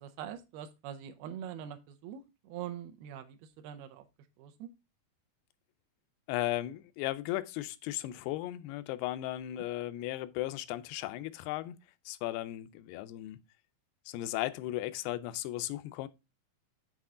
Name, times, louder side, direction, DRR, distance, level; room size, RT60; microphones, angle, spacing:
voice 1, 0.0-4.1 4.4-4.7, right 10 dB, 80° right, 2.6 m, -43 dB
voice 2, 6.3-11.8 12.1-13.4 14.1-16.1, left 15 dB, 90° left, 2.5 m, -36 dB
8.2 x 4.3 x 3.7 m
omnidirectional pair, 4.5 m